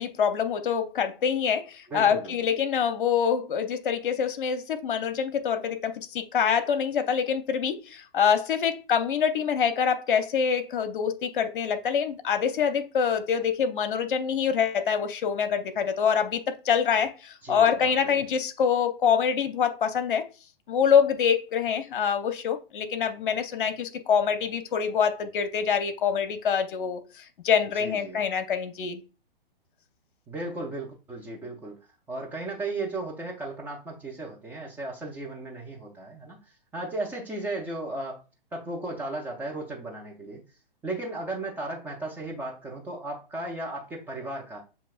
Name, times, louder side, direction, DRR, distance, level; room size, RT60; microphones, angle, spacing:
voice 1, 0.0-20.2 20.7-29.0, left 7 dB, 60° left, 0.8 m, -25 dB
voice 2, 1.9-2.3 17.4-18.3 27.8-28.2 30.3-31.8 32.1-38.2 38.5-40.4 40.8-44.6, right 2 dB, 5° right, 0.4 m, -35 dB
7.2 x 2.8 x 2.4 m
figure-of-eight pair, 125°, 29 cm